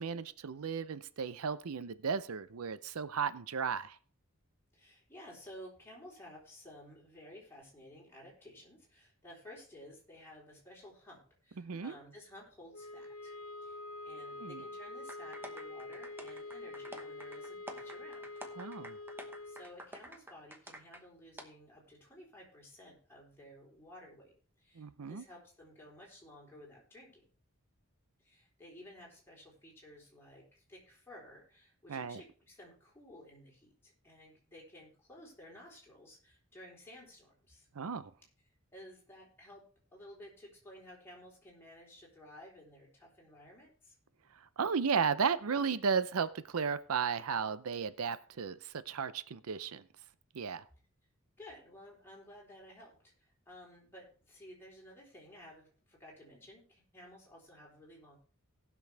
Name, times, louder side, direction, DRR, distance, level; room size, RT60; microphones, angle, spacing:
voice 1, 0.0-4.0 11.6-11.9 14.4-14.6 18.6-19.0 24.8-25.2 31.9-32.2 37.8-38.1 44.6-49.8 50.3-50.6, right 6 dB, 90° right, 14 dB, 0.6 m, -34 dB
voice 2, 4.7-13.8 14.0-18.4 19.2-27.3 28.2-37.7 38.7-39.6 39.9-44.0 51.4-58.2, left 1 dB, 10° left, -4 dB, 3.8 m, -54 dB
sound 1, 12.7-19.7, left 2 dB, 85° left, 1.0 m, -46 dB
sound 2, 15.1-21.0 21.4-21.5, right 1 dB, 10° right, 1.0 m, -49 dB
18.5 x 6.3 x 3.4 m, 0.42 s
head